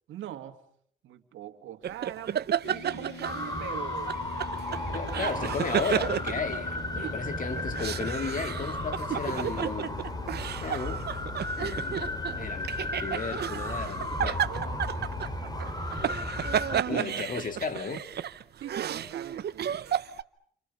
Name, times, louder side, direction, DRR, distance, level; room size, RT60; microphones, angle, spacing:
voice 1, 0.1-0.6 1.0-4.1 5.1-5.6 6.9-7.4 14.1-15.1 16.9-17.1 18.6-19.7, right 11 dB, 80° right, 2.4 m, -41 dB
sound 1, 1.8-3.7 4.1-7.1 7.6-20.2, right 9 dB, 55° right, 1.0 m, -32 dB
sound 2, 2.6-17.7, left 5 dB, 80° left, 5.0 m, -47 dB
sound 3, 3.2-16.8, left 1 dB, 20° left, 3.1 m, -34 dB
voice 2, 4.9-10.0 10.6-11.1 11.6-14.4 16.9-18.0, left 4 dB, 40° left, 2.6 m, -34 dB
29.5 x 28.0 x 5.7 m
cardioid pair, 90°, 20 cm